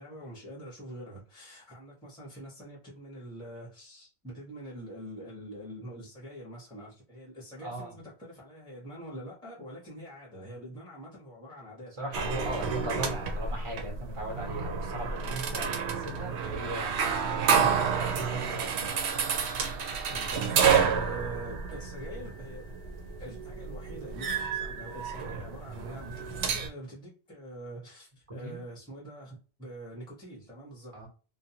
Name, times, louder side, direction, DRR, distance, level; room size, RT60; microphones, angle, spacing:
voice 1, 0.0-12.0 12.3-12.9 20.1-22.8 23.2-31.1, right 1 dB, 5° left, 0.8 m, -45 dB
voice 2, 7.6-7.9 12.0-19.0 28.4-28.6 30.9-31.1, right 1 dB, 30° right, 1.1 m, -38 dB
sound 1, 12.1-26.7, right 6 dB, 85° right, 0.9 m, -30 dB
2.5 x 2.2 x 2.7 m
omnidirectional pair, 1.1 m